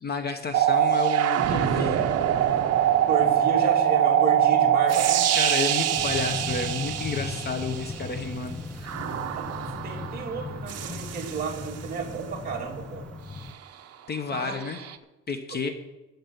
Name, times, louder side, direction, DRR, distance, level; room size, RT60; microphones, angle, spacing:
voice 1, 0.0-2.0 2.3-2.5 5.3-9.0 14.1-14.8 15.3-15.7, left 5 dB, 30° left, 7 dB, 1.0 m, -31 dB
sound 1, 0.5-8.1 8.8-11.8 14.5-15.0, right 10 dB, 50° right, 0.9 m, -24 dB
voice 2, 3.1-5.4 9.3-9.5 9.8-13.1 14.3-14.6, right 4 dB, 30° right, -2 dB, 2.6 m, -32 dB
sound 2, 5.9-13.5, left 3 dB, 5° left, 0.5 m, -38 dB
15.0 x 5.3 x 9.4 m, 1.0 s
cardioid pair, 165°, 31 cm